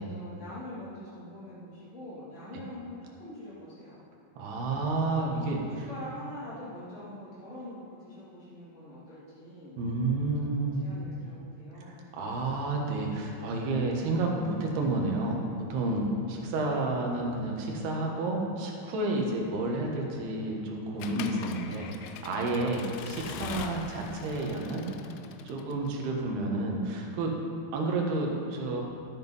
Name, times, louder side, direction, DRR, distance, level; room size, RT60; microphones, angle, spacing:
voice 1, 0.0-4.0 5.0-5.4 5.7-9.7 10.2-12.0, left 1 dB, 20° left, -11 dB, 2.0 m, -44 dB
voice 2, 4.4-5.9 9.8-10.9 11.8-24.8 25.4-27.3 27.7-28.8, right 2 dB, 70° right, 0 dB, 3.2 m, -30 dB
Accelerating revving vroom / Mechanisms, 21.0-25.9, left 7 dB, 90° left, 2.3 m, -42 dB
13.0 x 7.9 x 5.5 m, 2.5 s
omnidirectional pair, 5.2 m